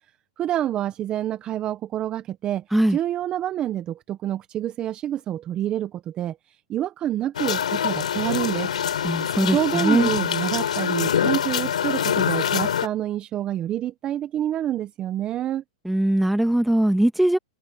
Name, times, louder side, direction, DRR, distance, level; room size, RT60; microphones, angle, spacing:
voice 1, 0.4-2.6 2.9-8.7 9.0-15.6, right 12 dB, 25° right, 0.9 m, -27 dB
sound 1, 7.3-12.9, left 9 dB, 85° left, 3.7 m, -24 dB
voice 2, 9.0-10.1 15.8-17.4, right 1 dB, ahead, 2.2 m, -21 dB
hypercardioid pair, 140°, 4 cm